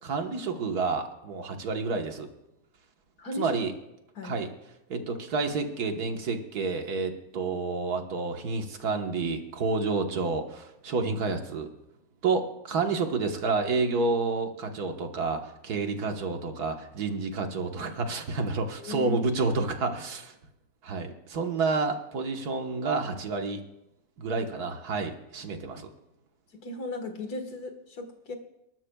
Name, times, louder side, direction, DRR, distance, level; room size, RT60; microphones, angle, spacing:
voice 1, 0.0-2.3 3.4-3.7 4.2-4.5 4.9-11.7 12.2-20.3 20.8-23.6 24.2-25.9, right 4 dB, 90° right, 5 dB, 1.8 m, -29 dB
voice 2, 3.2-3.6 4.2-4.4 18.8-19.2 26.5-28.4, left 3 dB, 85° left, 5 dB, 2.1 m, -36 dB
30.0 x 12.5 x 2.3 m, 0.86 s
omnidirectional pair, 1.6 m